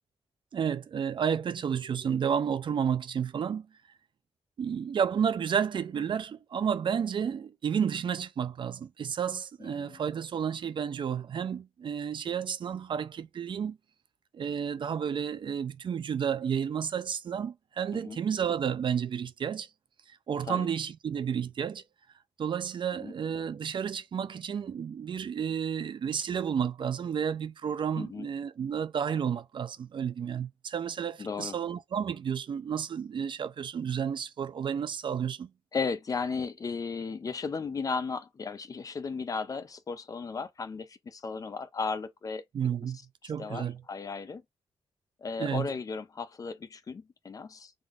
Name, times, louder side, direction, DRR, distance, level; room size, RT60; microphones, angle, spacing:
voice 1, 0.5-3.7 4.6-13.8 14.3-19.7 20.1-21.8 22.4-35.5 42.5-43.0 43.2-43.8 45.4-45.7, right 7 dB, 50° right, 0.5 m, -31 dB
voice 2, 9.6-10.0 17.9-18.2 20.5-20.7 23.0-23.1 28.0-28.3 31.2-31.6 35.7-42.4 43.4-44.4 45.2-47.7, left 4 dB, 35° left, 0.5 m, -35 dB
5.1 x 3.6 x 2.4 m
wide cardioid pair, 160°, 11 cm